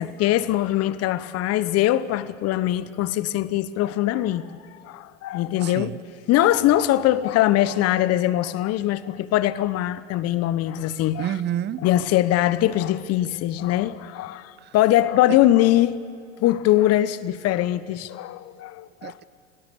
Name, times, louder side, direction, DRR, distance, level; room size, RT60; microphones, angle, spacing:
voice 1, 0.0-4.5 4.8-5.9 6.3-11.3 11.8-16.0 16.4-19.1, left 14 dB, 40° left, 1.2 m, -22 dB
voice 2, 5.6-6.0 11.2-11.8 14.6-14.7 15.3-15.4 19.0-19.2, right 11 dB, 30° right, 0.8 m, -29 dB
29.0 x 18.5 x 7.1 m
hypercardioid pair, 85°, 37 cm